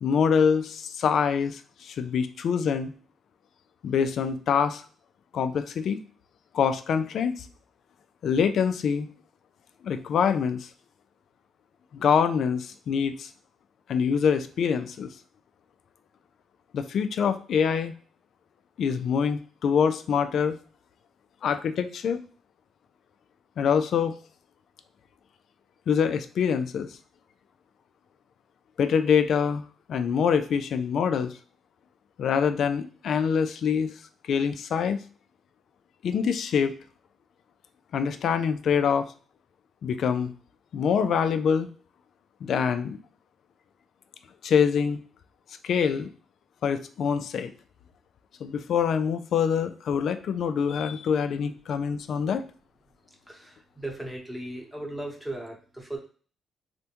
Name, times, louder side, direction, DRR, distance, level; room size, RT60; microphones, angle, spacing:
voice 1, 0.0-2.9 3.8-4.8 5.3-6.0 6.5-7.3 8.2-9.1 9.8-10.7 11.9-13.3 13.9-15.1 16.7-17.9 18.8-20.6 21.4-22.2 23.6-24.1 25.9-26.9 28.8-29.6 29.9-31.3 32.2-33.9 34.3-35.0 36.0-36.7 37.9-39.1 39.8-40.3 40.7-41.7 42.4-43.0 44.4-45.0 45.6-46.1 46.6-47.5 48.4-52.4, left 7 dB, 65° left, 9 dB, 0.3 m, -25 dB
voice 2, 53.3-56.0, right 1 dB, 10° right, 0 dB, 0.9 m, -37 dB
3.4 x 2.1 x 2.8 m, 0.40 s
cardioid pair, 90°, 0 cm